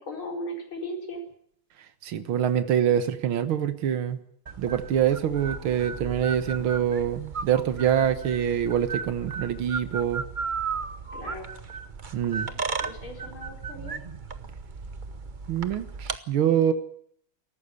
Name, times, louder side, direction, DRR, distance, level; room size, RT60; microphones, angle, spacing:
voice 1, 0.0-1.2 11.1-11.5 12.8-14.0, equal, 70° left, 1 dB, 5.4 m, -37 dB
voice 2, 2.0-4.2 4.6-10.2 12.1-12.5 15.5-16.7, right 9 dB, 75° right, 10 dB, 2.1 m, -25 dB
sound 1, 4.5-16.2, right 5 dB, 45° right, 0.6 m, -35 dB
19.0 x 14.5 x 9.6 m, 0.65 s
omnidirectional pair, 2.3 m